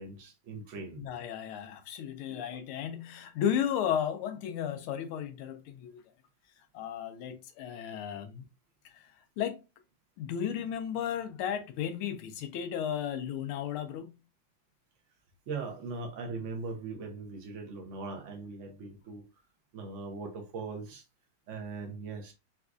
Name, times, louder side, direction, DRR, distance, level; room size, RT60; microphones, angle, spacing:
voice 1, 0.0-1.1 2.3-2.4 15.5-19.3 19.7-21.0 21.5-22.3, right 4 dB, 65° right, 0.7 m, -40 dB
voice 2, 1.0-6.0 6.7-8.4 9.4-9.6 10.2-14.2, left 9 dB, 90° left, 1.5 m, -34 dB
4.4 x 2.3 x 2.4 m
omnidirectional pair, 2.3 m